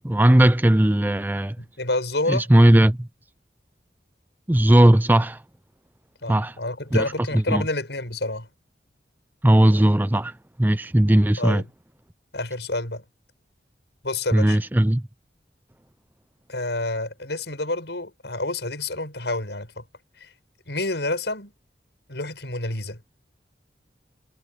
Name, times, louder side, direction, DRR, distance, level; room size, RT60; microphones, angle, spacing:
voice 1, 0.0-1.6 2.3-3.1 4.5-5.4 6.3-6.6 6.9-7.1 7.3-7.6 9.4-10.3 10.6-11.6 14.3-15.0, right 1 dB, 10° right, 0.5 m, -17 dB
voice 2, 1.6-2.5 6.2-8.5 11.4-11.7 12.3-13.0 14.0-14.6 16.5-19.8 20.2-20.3 20.7-21.5 22.1-23.0, left 2 dB, 80° left, 6.2 m, -28 dB
head